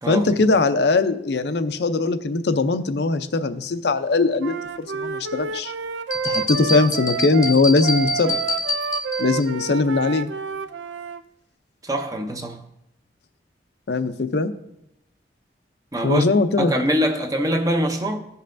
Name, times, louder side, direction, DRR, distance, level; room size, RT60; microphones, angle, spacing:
voice 1, 0.1-5.7 6.2-8.4 9.2-10.3 13.9-14.5 16.0-16.7, left 3 dB, 65° left, 0.5 m, -20 dB
Wind instrument woodwind instrument, 4.4-11.2, right 5 dB, 85° right, 0.4 m, -29 dB
sound 1, 6.1-9.5, left 2 dB, 15° left, 0.7 m, -27 dB
voice 2, 11.8-12.6 15.9-16.3 16.6-18.3, equal, 20° right, 0.6 m, -23 dB
16.0 x 5.4 x 2.5 m
head